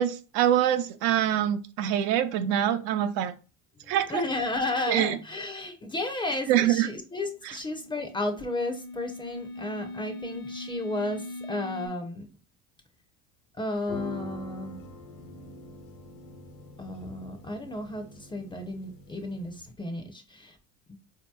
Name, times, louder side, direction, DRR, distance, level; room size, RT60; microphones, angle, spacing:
voice 1, 0.0-3.3 3.9-4.2 4.9-5.2 6.5-6.9, right 11 dB, 70° right, 9 dB, 0.6 m, -24 dB
voice 2, 3.8-12.3 13.5-14.8 16.8-20.6 20.9-21.0, left 2 dB, 15° left, 6 dB, 0.5 m, -33 dB
sound 1, 7.5-11.9, left 2 dB, 55° left, 0.8 m, -40 dB
sound 2, 13.8-19.7, equal, 80° left, 1.1 m, -44 dB
4.0 x 2.8 x 2.2 m, 0.33 s
supercardioid pair, 100°, 38 cm